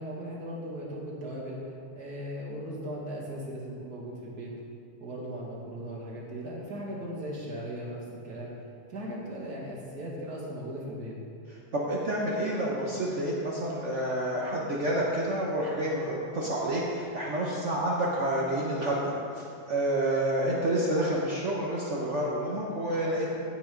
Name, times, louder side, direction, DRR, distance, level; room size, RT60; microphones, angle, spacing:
voice 1, 0.0-4.5 5.0-8.5 8.9-11.2, equal, 65° right, -5 dB, 2.6 m, -38 dB
voice 2, 11.7-23.3, right 1 dB, 50° right, -4 dB, 1.3 m, -29 dB
16.0 x 5.4 x 5.1 m, 2.4 s
omnidirectional pair, 1.8 m